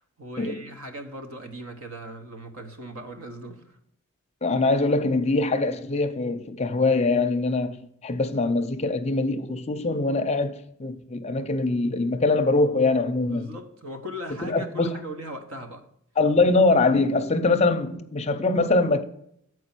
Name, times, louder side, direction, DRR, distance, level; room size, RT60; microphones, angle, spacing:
voice 1, 0.0-3.8 13.3-15.9, equal, 75° right, 1.2 m, -39 dB
voice 2, 4.4-13.5 14.4-15.0 16.2-19.0, left 3 dB, 30° left, 0.5 m, -23 dB
7.7 x 4.7 x 5.9 m
head